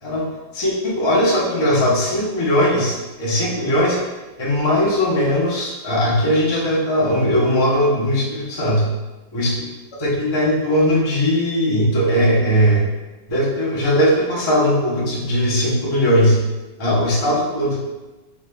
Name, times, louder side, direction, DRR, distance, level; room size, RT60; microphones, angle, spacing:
voice 1, 0.5-4.0 4.4-8.9 9.3-9.6 10.0-12.8 13.3-16.4 16.8-17.8, equal, 45° left, -6 dB, 0.3 m, -19 dB
4.7 x 4.2 x 2.2 m, 1.1 s
omnidirectional pair, 2.1 m